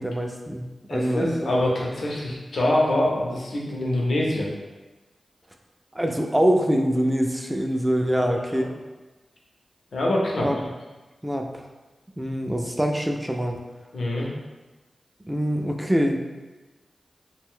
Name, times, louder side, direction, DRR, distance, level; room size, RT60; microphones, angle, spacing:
voice 1, 0.0-1.6 5.9-8.8 10.4-10.6 11.2-11.7 12.2-13.6 15.3-16.2, equal, 15° right, 3 dB, 0.4 m, -24 dB
voice 2, 0.9-4.5 8.1-8.2 8.5-8.6 9.9-10.5 13.9-14.3, left 1 dB, 80° left, -3 dB, 0.6 m, -24 dB
2.5 x 2.1 x 3.6 m, 1.2 s
cardioid pair, 50°, 0 cm